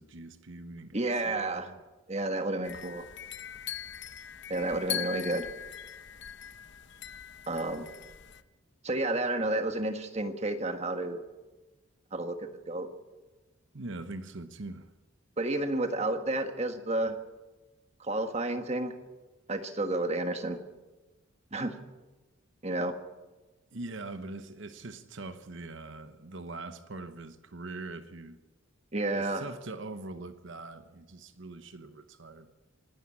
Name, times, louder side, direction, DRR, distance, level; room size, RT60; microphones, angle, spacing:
voice 1, 0.0-1.0 1.2-1.8 13.7-14.9 23.7-28.4 29.1-32.5, right 2 dB, 60° right, 1.0 m, -42 dB
voice 2, 0.9-1.7 2.1-3.1 4.5-5.5 7.5-7.9 8.8-11.2 12.1-12.9 15.4-17.2 18.0-18.9 19.5-20.6 21.5-21.7 22.6-22.9 28.9-29.5, right 2 dB, 30° right, 1.5 m, -31 dB
sound 1, 2.6-8.4, left 10 dB, 55° left, 0.9 m, -41 dB
26.0 x 12.0 x 8.6 m
head